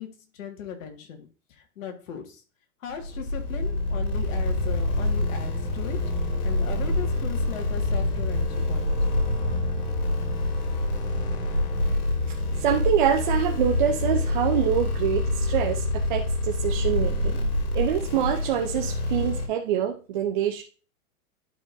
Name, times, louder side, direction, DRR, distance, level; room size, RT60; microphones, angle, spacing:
voice 1, 0.0-2.4 2.8-8.9, left 7 dB, 60° left, 4 dB, 1.8 m, -38 dB
sound 1, 2.9-19.5, left 2 dB, 85° left, 2.1 m, -26 dB
voice 2, 12.6-17.4 17.7-20.6, right 10 dB, 35° right, 2 dB, 0.5 m, -25 dB
11.5 x 4.9 x 2.6 m, 0.36 s
hypercardioid pair, 150°, 43 cm